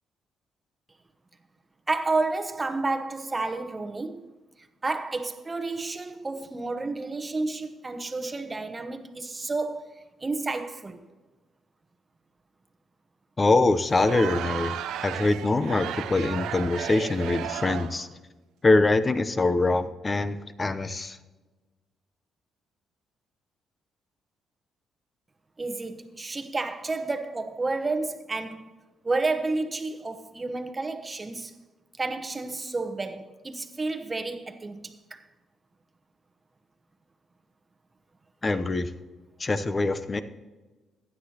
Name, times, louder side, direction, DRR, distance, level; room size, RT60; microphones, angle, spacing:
voice 1, 1.9-4.3 4.8-11.0 25.6-28.7 29.0-31.6 32.0-35.2, right 3 dB, 25° right, 1.0 m, -31 dB
voice 2, 13.4-14.8 15.0-18.1 18.6-21.2 38.4-38.9 39.4-40.2, left 2 dB, 25° left, 0.7 m, -24 dB
Crowd, 13.9-18.1, right 10 dB, 85° right, 0.5 m, -34 dB
15.5 x 9.8 x 2.9 m
cardioid pair, 90°, 0 cm